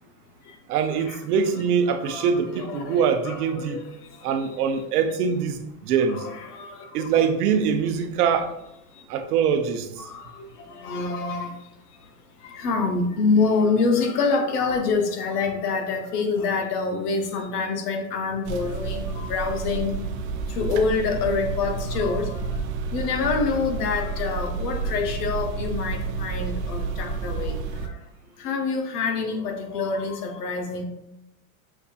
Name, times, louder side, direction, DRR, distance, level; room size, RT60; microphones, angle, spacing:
voice 1, 0.7-3.8 4.2-6.3 6.9-8.5 9.1-10.1, right 7 dB, 80° right, 7 dB, 0.7 m, -23 dB
voice 2, 2.0-4.3 6.1-7.3 8.9-9.0 10.0-11.7 12.4-19.9 20.5-22.6 22.9-28.0 28.4-30.8, left 4 dB, 85° left, 5 dB, 1.0 m, -26 dB
sound 1, 18.4-27.9, right 4 dB, 50° right, 0.5 m, -30 dB
5.7 x 2.7 x 2.4 m, 0.83 s
supercardioid pair, 150°, 45 cm